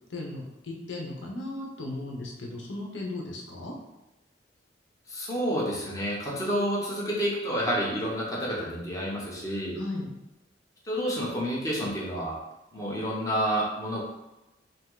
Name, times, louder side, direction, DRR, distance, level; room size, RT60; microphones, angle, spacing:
voice 1, 0.1-3.7 9.8-10.1, left 2 dB, 85° left, 0 dB, 0.9 m, -36 dB
voice 2, 5.1-9.8 10.8-12.4 12.7-14.0, equal, 20° left, -5 dB, 0.9 m, -29 dB
5.6 x 2.0 x 3.8 m, 0.98 s
head